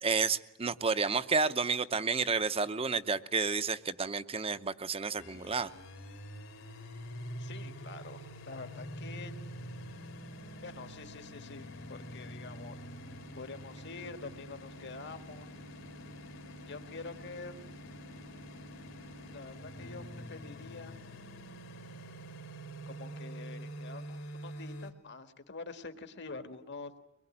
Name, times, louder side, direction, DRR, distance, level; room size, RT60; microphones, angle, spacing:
voice 1, 0.0-5.7, right 4 dB, 30° right, 12 dB, 0.9 m, -31 dB
sound 1, 5.2-24.9, equal, 75° left, 3.2 m, -46 dB
voice 2, 7.4-9.3 10.6-12.8 13.4-15.5 16.7-17.5 19.3-20.9 22.9-27.0, left 3 dB, 60° left, 8 dB, 1.8 m, -46 dB
24.0 x 22.0 x 9.9 m, 0.89 s
head